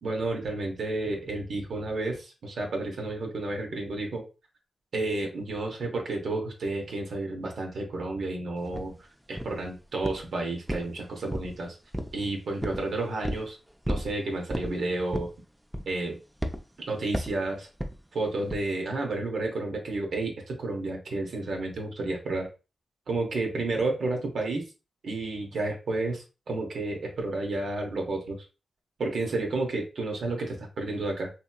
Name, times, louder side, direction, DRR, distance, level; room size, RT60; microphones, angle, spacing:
voice 1, 0.0-4.2 4.9-8.9 9.3-11.8 12.1-13.6 13.9-15.3 15.9-16.2 16.8-17.7 18.1-22.5 23.1-24.6 25.0-28.5 29.0-31.3, right 2 dB, 75° right, 1 dB, 0.9 m, -31 dB
sound 1, 8.7-8.9 9.4-9.7 10.0-10.3 10.7-11.6 11.9-12.2 12.6-12.8 13.2-13.5 13.8-14.1 14.5-14.7 15.1-15.4 15.7-16.0 16.4-16.6 17.1-17.4 17.8-18.0 18.5-18.7, equal, 10° right, 0.5 m, -32 dB
2.9 x 2.7 x 2.2 m, 0.31 s
cardioid pair, 55°, 0 cm